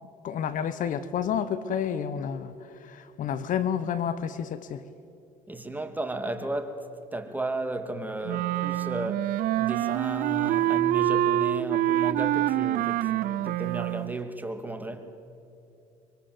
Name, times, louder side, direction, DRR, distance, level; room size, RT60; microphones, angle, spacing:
voice 1, 0.2-2.5 2.8-4.8, left 8 dB, 60° left, 1.2 m, -30 dB
voice 2, 5.5-6.8 7.1-9.3 9.6-15.1, right 2 dB, 10° right, 2.6 m, -34 dB
Wind instrument woodwind instrument, 8.2-14.1, right 13 dB, 70° right, 0.6 m, -26 dB
24.5 x 24.0 x 7.9 m
supercardioid pair, 75°, 15 cm